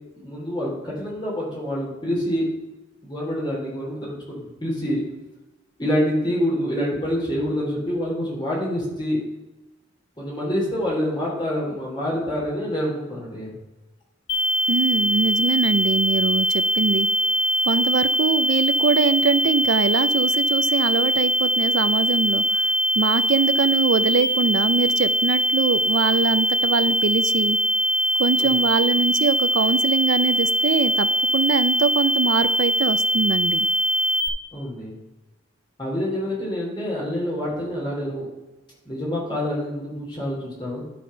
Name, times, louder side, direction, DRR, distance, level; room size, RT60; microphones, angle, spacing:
voice 1, 0.1-2.4 3.0-5.0 5.8-9.2 10.2-13.6 28.4-28.6 34.5-34.9 35.8-38.3 38.8-40.8, equal, 20° left, -5 dB, 3.1 m, -26 dB
sound 1, 14.3-34.3, equal, 65° left, 1.1 m, -22 dB
voice 2, 14.7-17.1 17.6-22.6 23.0-27.6 28.2-31.1 31.3-33.7, right 5 dB, 65° right, 13 dB, 0.4 m, -23 dB
11.0 x 4.2 x 5.5 m, 1.1 s
head